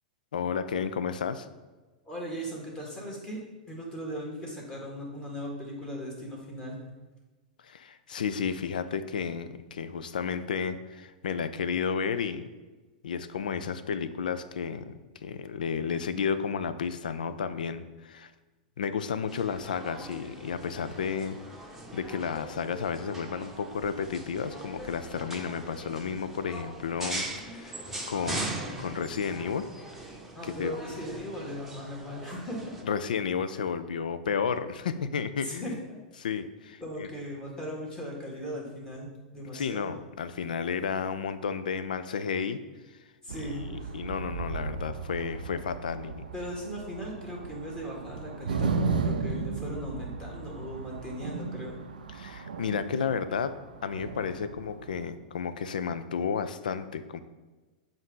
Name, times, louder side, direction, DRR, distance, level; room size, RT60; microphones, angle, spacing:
voice 1, 0.3-1.5 7.6-12.4 13.0-14.9 15.2-18.3 18.8-21.4 21.9-29.7 30.4-30.8 32.8-35.8 36.2-37.1 39.5-42.6 43.3-46.2 52.1-57.2, left 6 dB, 80° left, 12 dB, 0.4 m, -32 dB
voice 2, 2.1-3.4 3.7-6.8 30.3-32.8 35.3-36.0 36.8-39.9 43.2-44.0 46.3-51.8, equal, 15° left, -3 dB, 1.9 m, -38 dB
sound 1, 19.3-32.8, right 2 dB, 5° right, 1.0 m, -40 dB
sound 2, 43.3-55.0, right 4 dB, 85° right, 0.4 m, -35 dB
7.1 x 2.6 x 5.4 m, 1.2 s
hypercardioid pair, 105°, 5 cm